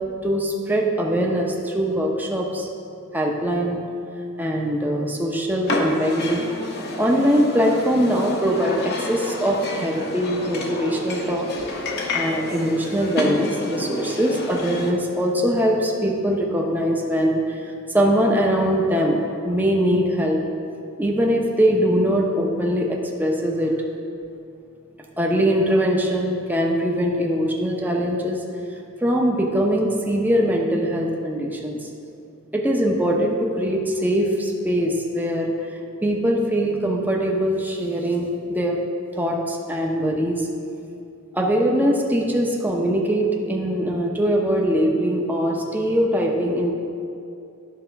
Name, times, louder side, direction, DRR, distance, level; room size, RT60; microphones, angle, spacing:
voice 1, 0.2-2.7 3.1-3.8 4.4-6.4 7.0-11.7 12.1-17.6 17.9-20.4 21.0-23.7 25.2-28.4 29.0-31.9 32.5-35.5 36.0-38.8 39.1-40.5 41.3-46.7, equal, 10° right, -1 dB, 0.9 m, -22 dB
ambient pub, 5.7-14.9, left 2 dB, 50° left, 1.0 m, -30 dB
11.5 x 4.3 x 5.9 m, 2.6 s
head